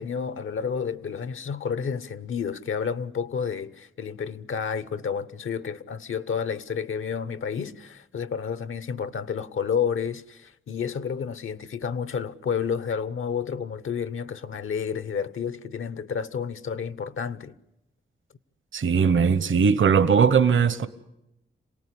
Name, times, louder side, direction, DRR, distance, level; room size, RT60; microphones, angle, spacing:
voice 1, 0.0-17.5, left 6 dB, 85° left, 1.0 m, -30 dB
voice 2, 18.7-20.9, right 6 dB, 75° right, 1.1 m, -19 dB
27.5 x 18.5 x 10.0 m
wide cardioid pair, 85°, 20 cm